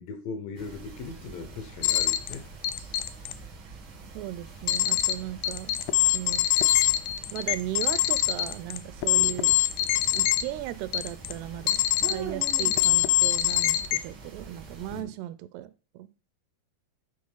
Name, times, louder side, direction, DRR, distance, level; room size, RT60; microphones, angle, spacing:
voice 1, 0.0-2.5 9.2-9.4 14.9-15.1, left 4 dB, 70° left, 2.4 m, -39 dB
sound 1, 0.6-15.0, right 4 dB, 70° right, 1.2 m, -44 dB
sound 2, 1.8-2.3 2.6-3.3 4.7-5.1 5.4-10.4 10.9-11.3 11.7-12.1 12.4-14.0, left 15 dB, 90° left, 2.0 m, -23 dB
voice 2, 4.1-5.8 6.1-6.4 7.3-9.5 10.1-16.1, right 14 dB, 85° right, 2.6 m, -37 dB
8.6 x 4.2 x 5.5 m
omnidirectional pair, 4.6 m